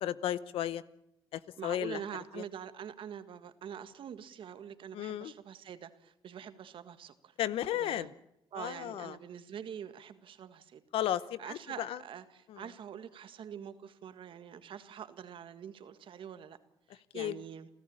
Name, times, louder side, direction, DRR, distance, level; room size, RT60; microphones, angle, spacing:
voice 1, 0.0-0.8 1.3-2.0 2.4-2.5 4.9-5.3 7.4-8.1 8.6-9.2 10.9-12.0 12.5-12.6 17.1-17.4, left 12 dB, 80° left, 16 dB, 0.9 m, -34 dB
voice 2, 1.6-7.3 7.8-8.1 8.5-10.8 11.4-16.6 16.9-17.7, right 8 dB, 70° right, 11 dB, 1.8 m, -45 dB
29.0 x 13.5 x 8.9 m, 0.82 s
cardioid pair, 75°, 9 cm